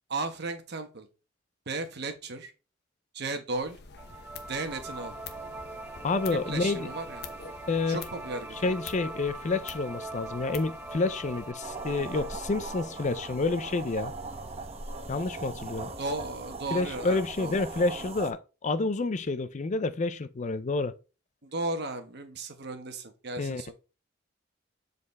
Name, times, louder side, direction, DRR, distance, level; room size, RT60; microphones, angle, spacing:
voice 1, 0.1-1.1 1.7-2.5 3.1-3.8 4.5-5.1 6.5-7.3 7.9-8.8 16.0-17.6 21.4-23.7, right 3 dB, 60° right, 1.2 m, -35 dB
sound 1, 3.5-11.5, left 5 dB, 60° left, 0.9 m, -47 dB
sound 2, 4.0-15.0, right 2 dB, 10° right, 0.7 m, -43 dB
voice 2, 6.0-6.9 7.7-8.0 8.6-14.1 15.1-15.9 16.7-20.9 23.4-23.7, left 3 dB, 40° left, 0.5 m, -29 dB
sound 3, 11.6-18.3, right 3 dB, 35° right, 0.9 m, -40 dB
7.6 x 4.1 x 4.1 m
head